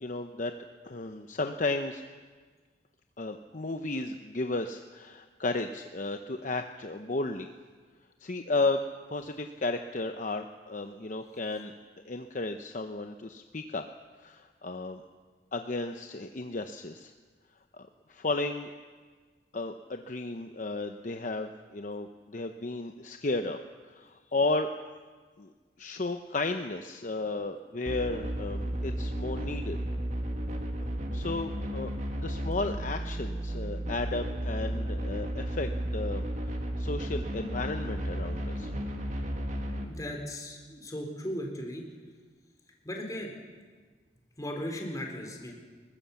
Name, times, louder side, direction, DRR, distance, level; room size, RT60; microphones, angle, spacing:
voice 1, 0.0-0.5 0.8-2.0 3.2-7.5 8.2-8.8 9.1-11.7 12.0-13.8 14.2-15.0 15.5-17.1 17.8-18.7 19.5-23.6 23.9-24.8 25.4-25.5 25.8-29.8 30.8-31.9 32.2-38.7, left 2 dB, 45° left, 6 dB, 0.8 m, -34 dB
sound 1, 27.9-39.8, equal, 45° right, 2.1 m, -33 dB
voice 2, 39.9-41.8 42.8-43.4 44.4-45.5, equal, 20° left, 1 dB, 4.0 m, -37 dB
22.0 x 20.0 x 7.1 m, 1.5 s
head